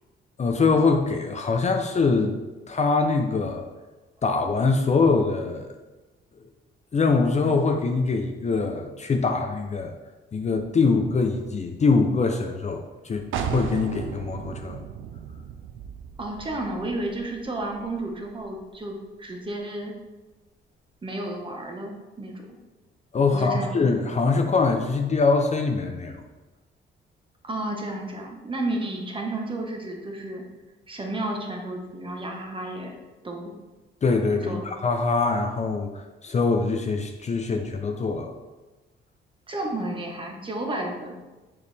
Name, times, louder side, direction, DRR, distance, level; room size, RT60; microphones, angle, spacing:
voice 1, 0.4-2.4 2.7-3.7 4.2-5.7 6.9-9.9 10.3-14.8 23.1-26.2 34.0-38.3, left 4 dB, 35° left, 4 dB, 0.6 m, -23 dB
sound 1, 13.3-18.9, right 7 dB, 85° right, 0.6 m, -36 dB
voice 2, 16.2-19.9 21.0-22.5 23.3-23.9 27.4-30.4 30.9-32.9 33.2-33.5 34.4-34.7 39.5-41.1, right 1 dB, 25° right, 1 dB, 1.3 m, -32 dB
6.8 x 4.8 x 3.4 m, 1.2 s
cardioid pair, 90°, 20 cm